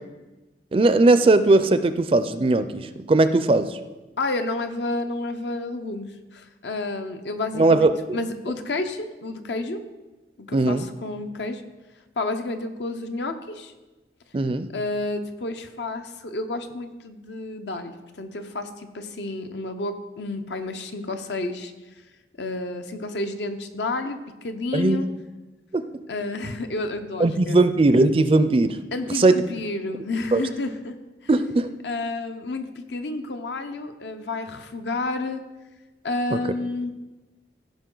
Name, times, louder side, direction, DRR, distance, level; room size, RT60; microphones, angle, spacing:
voice 1, 0.7-3.8 7.6-8.2 10.5-10.9 14.3-14.7 24.7-25.0 25.7-25.8 27.2-28.8 29.1-29.3 30.3-30.4 31.3-31.7 36.3-36.4, right 2 dB, 30° right, 11 dB, 0.4 m, -19 dB
voice 2, 4.2-9.8 10.4-11.6 12.2-13.7 14.7-21.7 22.4-25.1 26.1-27.6 28.9-31.0 31.8-35.4 36.0-36.9, left 2 dB, 75° left, 7 dB, 0.8 m, -30 dB
15.5 x 5.3 x 3.9 m, 1.1 s
head